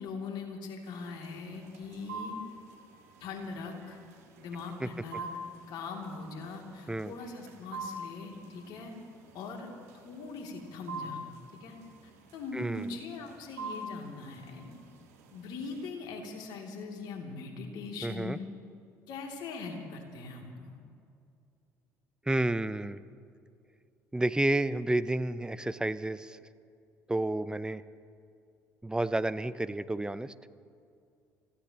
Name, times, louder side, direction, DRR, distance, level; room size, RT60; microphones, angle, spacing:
voice 1, 0.0-2.4 3.2-4.0 4.4-5.3 5.7-8.9 9.3-9.7 9.9-11.2 11.6-11.8 12.3-14.7 15.3-18.4 19.1-20.8, left 4 dB, 65° left, 1 dB, 2.9 m, -41 dB
sound 1, 0.8-15.9, right 2 dB, 80° right, 2.1 m, -46 dB
voice 2, 12.5-13.0 18.0-18.4 22.3-23.0 24.1-26.4 27.1-27.8 28.8-30.3, right 1 dB, 10° right, 14 dB, 0.8 m, -30 dB
29.0 x 16.0 x 3.0 m, 2.5 s
hypercardioid pair, 55°, 8 cm